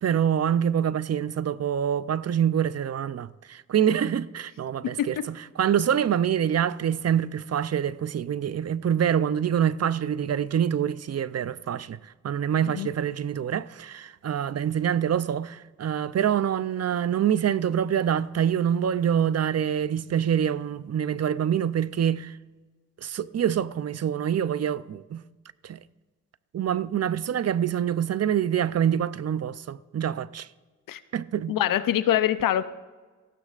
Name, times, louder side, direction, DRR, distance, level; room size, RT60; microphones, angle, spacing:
voice 1, 0.0-22.4 23.0-25.2 25.6-25.8 26.5-30.5 31.1-31.6, right 9 dB, 50° right, 0.6 m, -26 dB
voice 2, 4.8-5.3 12.7-12.9 30.9-31.0 31.5-32.6, left 11 dB, 85° left, 0.6 m, -24 dB
18.5 x 15.0 x 2.5 m
cardioid pair, 60°, 32 cm